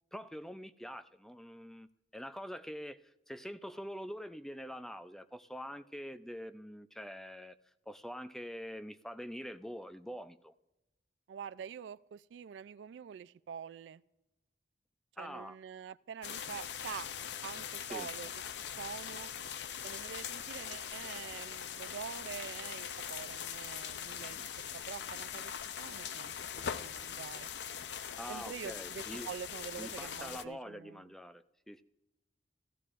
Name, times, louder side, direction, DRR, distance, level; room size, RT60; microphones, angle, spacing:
voice 1, 0.1-1.9 2.1-7.6 7.9-10.5 15.2-15.6 17.9-18.1 28.2-29.3 29.8-31.8, equal, ahead, 0.3 m, -45 dB
voice 2, 11.3-14.0 15.2-17.1 17.4-18.3 18.8-19.3 19.8-24.4 24.7-25.5 25.8-27.5 28.3-31.1, right 7 dB, 85° right, 0.3 m, -46 dB
sound 1, 16.2-30.4, left 8 dB, 75° left, 0.5 m, -42 dB
16.0 x 15.0 x 2.5 m
head